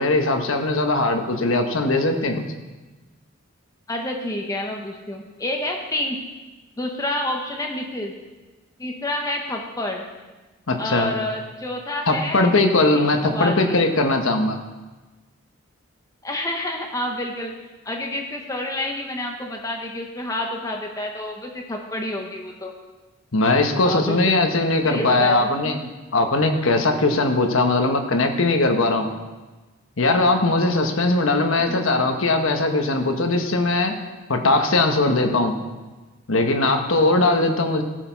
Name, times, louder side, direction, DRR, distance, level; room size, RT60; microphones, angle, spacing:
voice 1, 0.0-2.4 10.7-11.1 12.1-14.6 23.3-25.8 26.1-29.1 30.0-33.9 34.3-35.5 36.3-37.8, left 2 dB, 70° left, 5 dB, 1.2 m, -20 dB
voice 2, 3.9-6.2 6.8-8.1 8.8-10.1 10.8-12.5 12.9-13.8 16.2-17.5 17.8-22.7 23.8-24.5 24.8-25.8 31.6-31.8, left 1 dB, 15° left, 1 dB, 0.9 m, -29 dB
15.5 x 6.5 x 4.6 m, 1.2 s
head